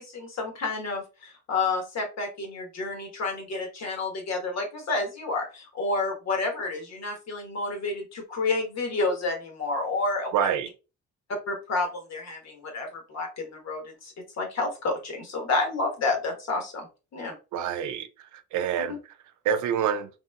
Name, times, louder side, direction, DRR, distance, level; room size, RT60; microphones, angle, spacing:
voice 1, 0.0-10.5 11.5-16.9 17.1-17.3 18.8-18.9, left 3 dB, 60° left, 1.2 m, -30 dB
voice 2, 10.3-10.7 17.5-18.1 18.5-19.0 19.5-20.1, right 8 dB, 75° right, 0.5 m, -26 dB
3.0 x 2.8 x 2.2 m
cardioid pair, 90°, 30 cm